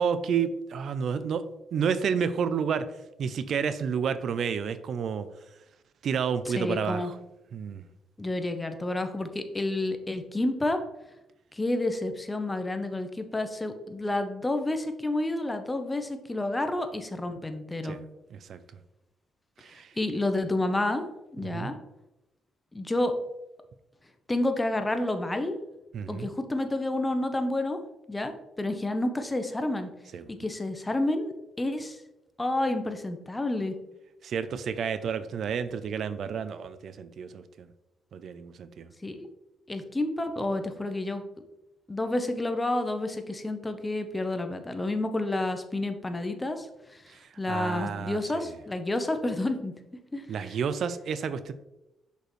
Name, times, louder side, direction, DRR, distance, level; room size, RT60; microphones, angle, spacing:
voice 1, 0.0-1.4 1.7-2.9 3.2-5.3 6.0-7.2 7.5-7.9 17.8-18.0 18.3-18.6 19.6-19.9 21.4-21.7 25.9-26.3 30.1-30.2 34.2-37.7 38.1-38.9 47.1-48.4 50.3-51.5, right 6 dB, 60° right, 12 dB, 0.4 m, -30 dB
voice 2, 6.5-7.1 8.2-10.8 11.5-18.0 20.0-21.0 21.3-21.8 22.7-23.1 24.3-25.6 26.1-27.8 28.1-29.9 30.3-31.3 31.6-32.0 32.4-33.8 39.0-39.3 39.7-41.2 41.9-49.8 50.1-50.6, left 2 dB, 15° left, 7 dB, 0.8 m, -30 dB
6.1 x 5.4 x 3.1 m, 0.93 s
cardioid pair, 90°, 0 cm